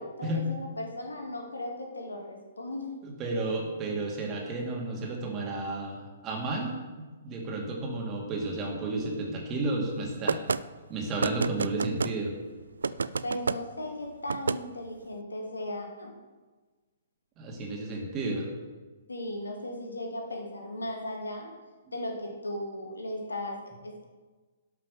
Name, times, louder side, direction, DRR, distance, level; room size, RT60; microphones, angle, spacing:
voice 1, 0.0-3.0 13.2-16.2 19.1-21.5 21.9-24.0, left 1 dB, 80° left, 2 dB, 2.2 m, -37 dB
voice 2, 3.2-6.8 7.2-10.4 10.9-12.3 17.4-18.5, right 2 dB, 25° right, 0 dB, 2.3 m, -32 dB
sound 1, 10.3-10.6 11.2-12.1 12.8-13.6 14.3-14.6, right 5 dB, 70° right, 0.3 m, -28 dB
11.5 x 5.8 x 6.6 m, 1.3 s
figure-of-eight pair, 120°, 0 cm